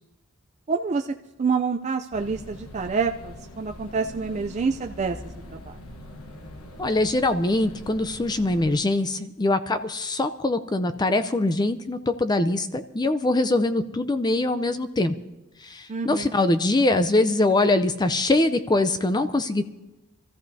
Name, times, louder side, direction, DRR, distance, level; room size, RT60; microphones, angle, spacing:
voice 1, 0.7-1.1 1.4-5.8 15.9-16.4, right 5 dB, 35° right, 4 dB, 0.4 m, -27 dB
sound 1, 2.1-8.8, left 1 dB, 85° left, 1.2 m, -43 dB
voice 2, 6.8-15.1 15.6-19.7, left 2 dB, 20° left, 10 dB, 0.5 m, -23 dB
26.0 x 14.0 x 2.7 m, 0.98 s
head